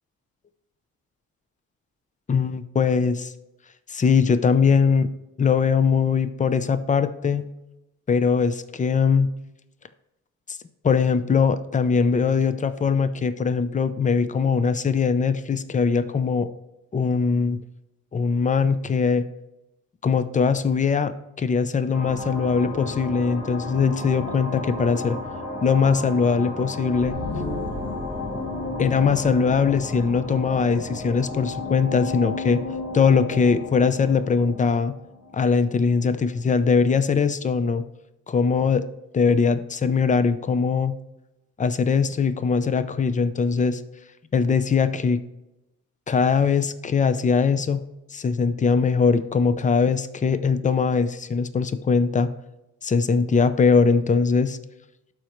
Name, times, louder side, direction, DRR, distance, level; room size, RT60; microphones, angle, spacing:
voice 1, 2.3-3.3 3.9-5.1 5.4-7.5 8.1-9.3 10.5-10.6 10.8-16.5 16.9-17.6 18.1-19.3 20.0-25.2 25.6-27.2 28.8-32.6 32.9-35.0 35.3-37.8 38.3-38.8 39.1-40.9 41.6-43.8 44.3-45.2 46.1-47.8 48.1-52.3 52.8-54.6, left 5 dB, 25° left, 12 dB, 0.6 m, -21 dB
sound 1, 21.9-36.1, left 2 dB, 55° left, 2.3 m, -32 dB
12.0 x 4.5 x 3.1 m, 0.93 s
cardioid pair, 90°, 30 cm